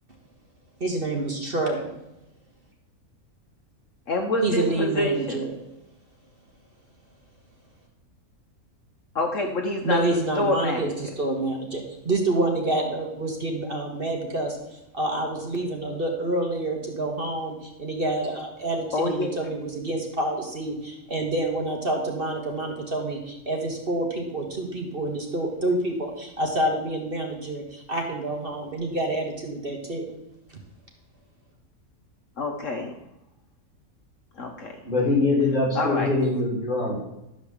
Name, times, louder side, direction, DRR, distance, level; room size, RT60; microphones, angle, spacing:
voice 1, 0.8-1.9 4.4-5.5 9.8-30.1, right 2 dB, 40° right, 1 dB, 1.7 m, -28 dB
voice 2, 4.1-5.4 9.1-10.0 10.4-10.9 18.9-19.3 32.4-32.9 34.4-34.7 35.7-36.1, left 2 dB, 60° left, 3 dB, 1.3 m, -26 dB
voice 3, 34.9-37.0, left 2 dB, 30° left, -4 dB, 3.5 m, -23 dB
12.5 x 5.1 x 7.3 m, 0.89 s
omnidirectional pair, 1.5 m